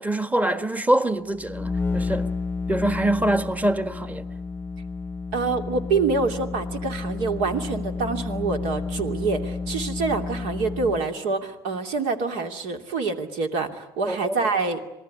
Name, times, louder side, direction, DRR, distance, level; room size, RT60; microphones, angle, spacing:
voice 1, 0.0-2.3 2.7-4.2 14.0-14.4, right 1 dB, 10° right, 1.5 m, -24 dB
sound 1, 1.3-11.2, left 4 dB, 15° left, 0.8 m, -31 dB
voice 2, 5.3-14.8, right 4 dB, 65° right, 2.8 m, -26 dB
27.0 x 19.5 x 9.8 m
hypercardioid pair, 75°, 13 cm